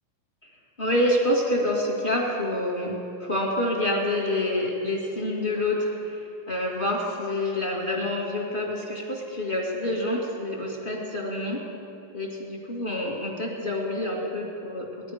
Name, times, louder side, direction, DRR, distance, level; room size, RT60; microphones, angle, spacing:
voice 1, 0.8-11.6 12.1-15.1, left 1 dB, 20° left, -3 dB, 1.5 m, -27 dB
20.5 x 12.0 x 5.0 m, 2.9 s
omnidirectional pair, 4.1 m